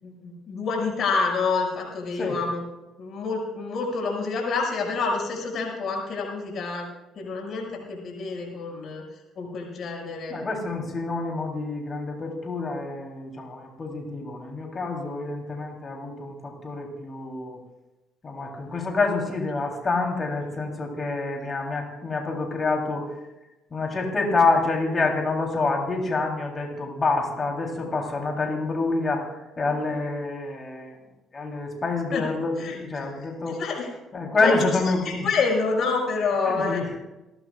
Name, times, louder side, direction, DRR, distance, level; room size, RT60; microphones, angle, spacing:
voice 1, 0.0-2.6 3.0-6.9 7.1-9.0 9.4-10.4 32.1-32.2 32.6-32.8 33.5-33.9 34.4-34.7 35.0-36.8, left 4 dB, 55° left, 0 dB, 6.2 m, -27 dB
voice 2, 10.3-17.6 18.2-23.2 23.7-31.0 31.3-32.6 32.8-33.6 34.1-35.3 36.5-36.9, left 3 dB, 35° left, 1 dB, 3.6 m, -27 dB
28.0 x 12.0 x 2.5 m, 1.0 s
hypercardioid pair, 60°, 0 cm